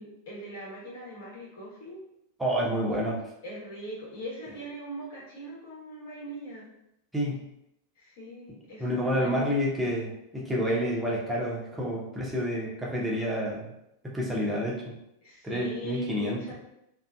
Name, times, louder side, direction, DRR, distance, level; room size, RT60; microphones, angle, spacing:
voice 1, 0.0-2.0 3.4-6.7 7.9-9.4 15.2-16.5, equal, 55° left, -7 dB, 1.2 m, -41 dB
voice 2, 2.4-3.2 7.1-7.4 8.8-13.7 14.0-15.0 15.4-16.5, equal, 5° right, -4 dB, 0.7 m, -29 dB
2.6 x 2.5 x 2.2 m, 0.81 s
figure-of-eight pair, 90°, 0 cm